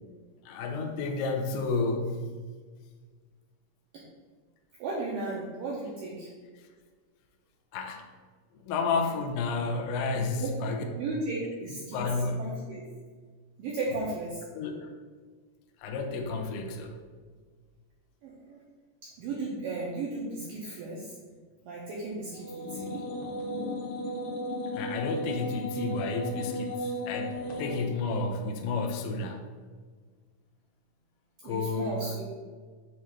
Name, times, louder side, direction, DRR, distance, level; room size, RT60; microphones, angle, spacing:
voice 1, 0.5-2.1 7.7-8.0 8.6-10.8 11.9-12.4 14.6-14.9 15.8-17.0 24.7-29.4 31.4-32.0, left 4 dB, 80° left, 3 dB, 2.4 m, -31 dB
voice 2, 4.8-6.3 10.3-10.5 10.9-12.0 12.4-12.8 13.6-14.4 18.2-18.6 19.0-21.2 21.6-23.1 31.4-32.2, right 3 dB, 80° right, -4 dB, 2.0 m, -35 dB
sound 1, 22.3-27.8, equal, 65° left, 2.4 m, -34 dB
7.4 x 3.2 x 5.6 m, 1.5 s
omnidirectional pair, 5.2 m